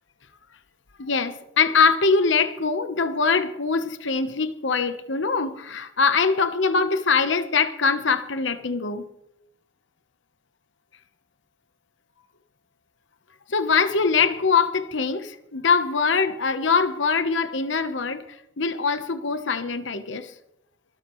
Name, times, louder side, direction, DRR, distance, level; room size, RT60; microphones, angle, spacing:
voice 1, 1.0-9.0 13.5-18.2 18.6-20.3, left 5 dB, 75° left, 1.0 m, -23 dB
23.0 x 13.0 x 3.2 m
head